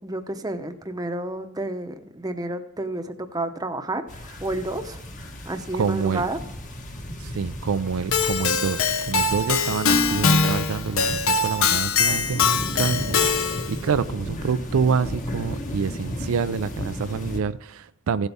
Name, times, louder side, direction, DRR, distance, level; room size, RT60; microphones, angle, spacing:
voice 1, 0.0-5.0 5.5-6.4, right 2 dB, 20° right, 0.8 m, -30 dB
sound 1, 4.1-17.4, equal, 40° left, 1.3 m, -35 dB
voice 2, 5.8-6.3 7.2-18.3, right 6 dB, 85° right, 0.4 m, -27 dB
Keyboard (musical), 8.1-13.8, left 4 dB, 75° left, 0.8 m, -22 dB
15.5 x 8.1 x 3.5 m
head